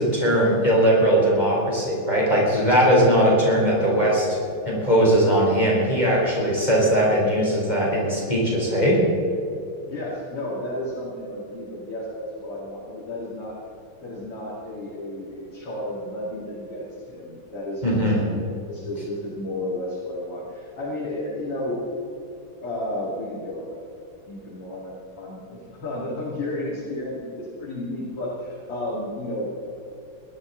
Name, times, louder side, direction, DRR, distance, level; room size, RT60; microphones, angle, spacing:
voice 1, 0.0-4.4 4.7-9.0 17.8-18.2, equal, 20° left, -4 dB, 3.6 m, -19 dB
voice 2, 9.8-13.6 14.0-21.8 22.6-23.8 24.3-29.5, left 1 dB, 85° left, -7 dB, 3.5 m, -32 dB
20.0 x 12.5 x 3.9 m, 2.7 s
omnidirectional pair, 2.4 m